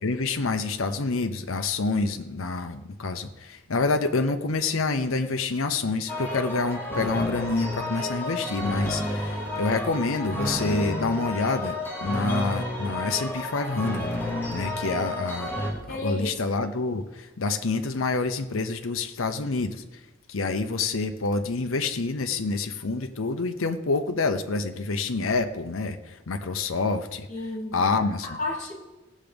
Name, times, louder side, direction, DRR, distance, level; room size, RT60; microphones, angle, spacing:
voice 1, 0.0-14.1 14.5-15.5 15.9-19.8 20.3-27.3 27.7-28.3, left 3 dB, 80° left, 7 dB, 0.8 m, -27 dB
sound 1, 6.1-15.7, left 1 dB, 10° left, 2.2 m, -31 dB
voice 2, 15.9-16.4 27.3-27.8 28.2-28.7, left 2 dB, 35° left, 0 dB, 2.6 m, -32 dB
17.0 x 7.4 x 5.2 m, 1.0 s
head